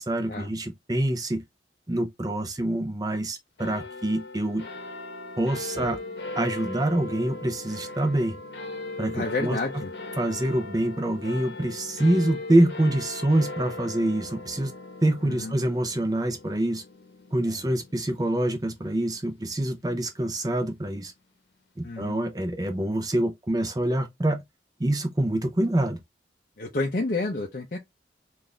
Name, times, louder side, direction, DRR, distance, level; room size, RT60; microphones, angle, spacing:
voice 1, 0.0-1.4 1.9-4.7 5.4-6.0 6.4-8.4 9.0-9.6 10.2-14.7 15.0-16.8 17.3-21.1 21.8-24.4 24.8-26.0, right 1 dB, 20° right, 0.5 m, -26 dB
sound 1, 3.6-20.3, left 2 dB, 65° left, 1.0 m, -39 dB
voice 2, 9.1-9.9 15.2-15.5 17.4-17.7 21.8-22.2 26.6-27.8, left 3 dB, 50° left, 0.6 m, -30 dB
3.9 x 2.5 x 3.2 m
head